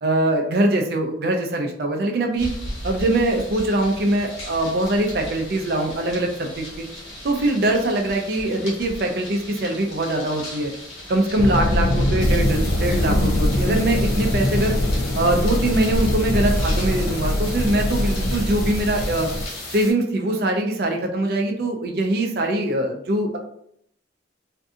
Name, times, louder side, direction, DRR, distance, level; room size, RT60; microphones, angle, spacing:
voice 1, 0.0-2.5 2.8-6.9 7.2-10.7 11.1-14.8 15.2-19.3 19.7-23.4, right 1 dB, 55° right, 3 dB, 0.4 m, -22 dB
sound 1, 2.4-19.8, left 1 dB, 65° left, 1.3 m, -37 dB
sound 2, 11.4-19.5, left 1 dB, 85° left, 0.4 m, -22 dB
sound 3, 12.2-19.9, left 2 dB, 50° left, 0.7 m, -37 dB
2.6 x 2.5 x 2.4 m, 0.71 s
head